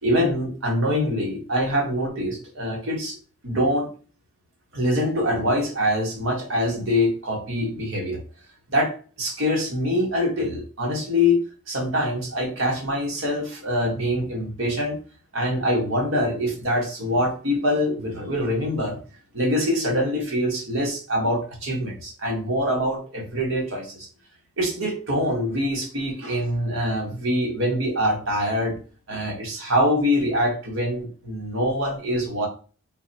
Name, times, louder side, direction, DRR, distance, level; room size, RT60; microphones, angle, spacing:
voice 1, 0.0-3.2 3.4-3.9 4.7-8.2 8.7-8.9 9.2-11.4 11.7-15.0 15.3-19.0 19.3-24.1 24.6-28.8 29.1-32.5, left 1 dB, 65° right, 0 dB, 1.2 m, -24 dB
4.0 x 2.0 x 4.1 m, 0.39 s
head